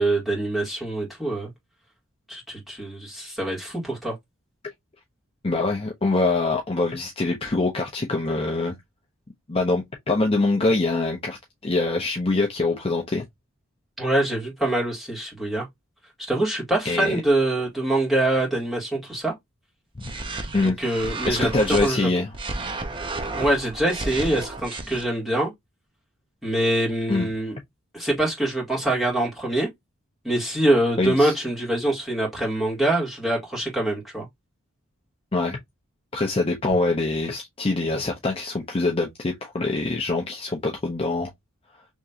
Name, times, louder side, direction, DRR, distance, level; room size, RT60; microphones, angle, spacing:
voice 1, 0.0-1.5 2.3-4.1 14.0-15.7 16.2-19.3 20.6-22.1 23.4-25.5 26.4-27.6 27.9-29.7 30.2-34.3, right 1 dB, ahead, 1.8 m, -24 dB
voice 2, 5.4-8.8 9.5-11.4 11.6-13.3 16.8-17.2 20.0-20.1 20.5-20.8 21.3-22.3 27.1-27.3 31.0-31.3 35.3-35.6 36.1-41.3, left 2 dB, 25° left, 0.6 m, -24 dB
sound 1, 20.0-21.9 22.3-25.0, right 2 dB, 25° right, 0.6 m, -32 dB
3.5 x 3.0 x 2.7 m
head